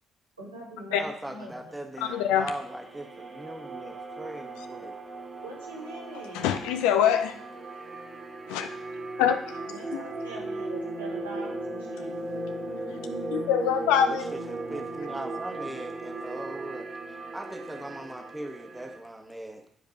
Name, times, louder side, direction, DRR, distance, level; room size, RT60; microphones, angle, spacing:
voice 1, 0.4-1.7 5.4-6.6 9.7-12.4, right 1 dB, 85° right, -7 dB, 2.4 m, -43 dB
voice 2, 0.9-4.9 14.1-19.6, right 1 dB, 10° right, 4 dB, 1.5 m, -40 dB
voice 3, 2.0-2.5 6.3-7.4 8.5-8.7 9.2-10.0 13.3-14.3, left 9 dB, 65° left, 7 dB, 0.7 m, -25 dB
sound 1, 2.1-19.0, right 2 dB, 40° right, 2.1 m, -37 dB
9.7 x 5.2 x 5.3 m, 0.68 s
figure-of-eight pair, 45°, 0 cm